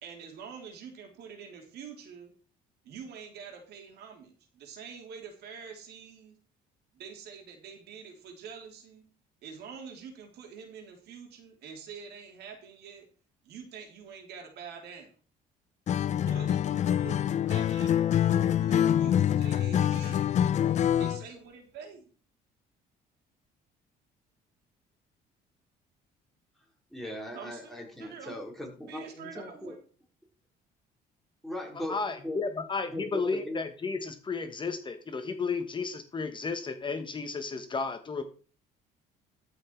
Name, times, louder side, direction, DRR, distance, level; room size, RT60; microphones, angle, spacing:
voice 1, 0.0-2.3 2.8-6.4 6.9-9.0 9.4-13.1 13.4-15.1 16.1-20.7 21.0-22.1 27.3-27.7 28.0-28.4 28.8-29.8, right 6 dB, 75° right, 3 dB, 3.1 m, -46 dB
Acoustic guitar, 15.9-21.3, left 10 dB, 45° left, 0.5 m, -25 dB
voice 2, 26.9-29.8 31.4-32.5 32.9-33.6, left 1 dB, ahead, 0 dB, 4.2 m, -39 dB
voice 3, 31.9-38.2, left 4 dB, 30° left, 8 dB, 1.3 m, -33 dB
13.5 x 5.9 x 4.6 m, 0.39 s
cardioid pair, 110°, 17 cm